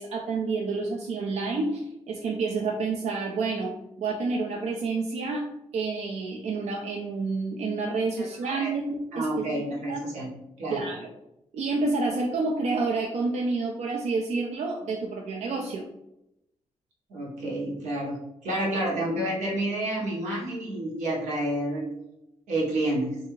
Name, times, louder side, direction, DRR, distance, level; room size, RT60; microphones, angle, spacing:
voice 1, 0.0-10.1 10.7-11.1 11.5-15.9, right 3 dB, 65° right, 0 dB, 0.4 m, -29 dB
voice 2, 8.2-8.7 9.1-10.3 10.6-10.8 17.1-18.2 18.4-21.9 22.5-23.2, right 1 dB, 90° right, -4 dB, 0.9 m, -29 dB
2.7 x 2.4 x 2.9 m, 0.85 s
supercardioid pair, 50°, 12 cm